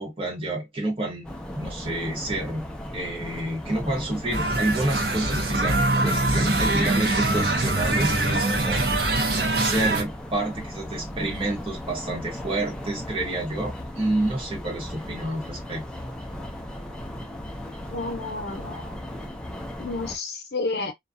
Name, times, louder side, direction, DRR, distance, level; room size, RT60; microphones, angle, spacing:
voice 1, 0.0-2.7 2.9-9.3 9.6-15.8, right 1 dB, 30° right, 1.0 m, -29 dB
sound 1, 1.2-20.2, left 1 dB, 5° left, 0.4 m, -37 dB
sound 2, 4.3-10.0, right 2 dB, 65° right, 0.7 m, -23 dB
voice 2, 17.9-19.0 19.8-20.9, left 3 dB, 65° left, 0.7 m, -31 dB
2.3 x 2.3 x 2.5 m
head